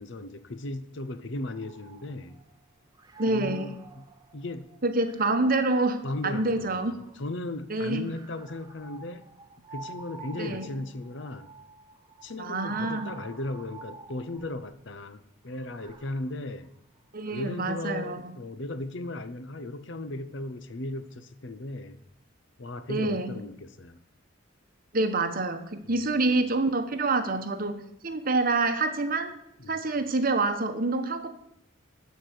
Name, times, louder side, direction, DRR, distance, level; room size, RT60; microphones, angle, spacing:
voice 1, 0.0-2.4 3.3-4.7 6.0-9.3 9.7-11.5 12.2-16.7 17.3-22.0 22.6-24.0 25.9-26.3 29.6-29.8, left 2 dB, 60° left, 0.7 m, -37 dB
sound 1, 1.4-2.6 2.9-7.3 8.0-14.7 15.5-18.1, right 4 dB, 20° right, 0.8 m, -49 dB
voice 2, 3.2-3.7 4.8-6.9 7.7-8.1 10.4-10.7 12.4-13.1 17.1-18.3 22.9-23.4 24.9-29.3 29.7-31.3, right 2 dB, 45° right, 1.1 m, -27 dB
13.0 x 4.7 x 8.1 m
head